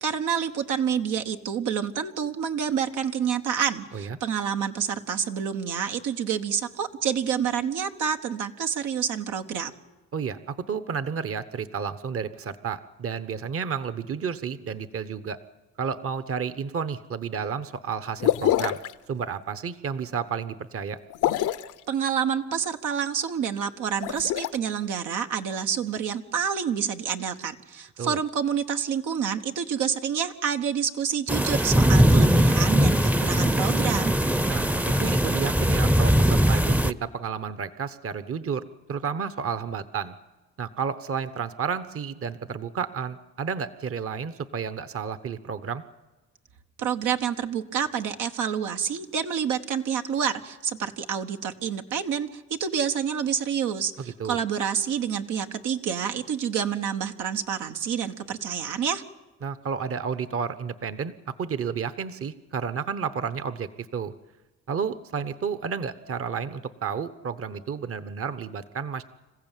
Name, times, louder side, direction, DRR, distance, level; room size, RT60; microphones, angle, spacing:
voice 1, 0.0-9.7 21.9-34.1 46.8-59.0, right 7 dB, 85° right, 5 dB, 1.4 m, -28 dB
voice 2, 10.1-15.4 15.8-18.8 19.1-21.0 28.0-28.2 34.5-40.2 40.6-45.8 54.0-54.4 59.4-61.1 61.4-64.1 64.7-69.0, right 6 dB, 50° right, 13 dB, 1.1 m, -31 dB
sound 1, 18.2-18.9 21.1-21.7 23.9-24.5, left 13 dB, 85° left, 0.9 m, -24 dB
sound 2, 31.3-36.9, equal, 5° right, 0.7 m, -20 dB
27.0 x 15.0 x 9.1 m, 1.2 s
cardioid pair, 90°, 30 cm